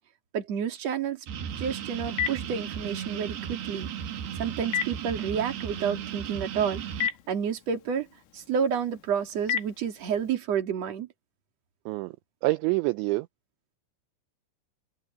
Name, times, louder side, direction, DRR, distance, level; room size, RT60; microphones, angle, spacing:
voice 1, 0.3-1.2 1.6-3.9 4.4-6.8 7.3-8.1 8.3-11.1, right 7 dB, 40° right, 3.1 m, -30 dB
sound 1, 1.3-7.1, right 9 dB, 60° right, 3.3 m, -36 dB
Telephone, 1.5-10.3, left 9 dB, 85° left, 4.2 m, -37 dB
voice 2, 12.4-13.3, right 21 dB, 80° right, 2.8 m, -26 dB
omnidirectional pair, 5.7 m